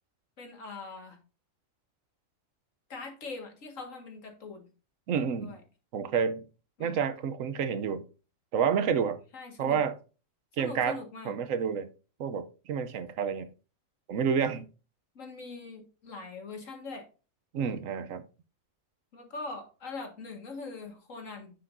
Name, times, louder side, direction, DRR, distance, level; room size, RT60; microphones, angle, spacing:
voice 1, 0.4-1.2 2.9-4.7 5.4-5.6 6.8-7.0 9.3-9.8 10.6-11.4 15.2-17.1 19.1-21.5, left 3 dB, 75° left, 2.2 m, -42 dB
voice 2, 5.1-5.6 5.9-6.4 6.8-8.0 8.5-9.2 9.6-10.0 10.6-11.0 11.2-11.9 12.2-13.5 14.1-14.7 17.5-18.2, right 7 dB, 80° right, 1.1 m, -29 dB
9.6 x 7.0 x 2.6 m
omnidirectional pair, 1.4 m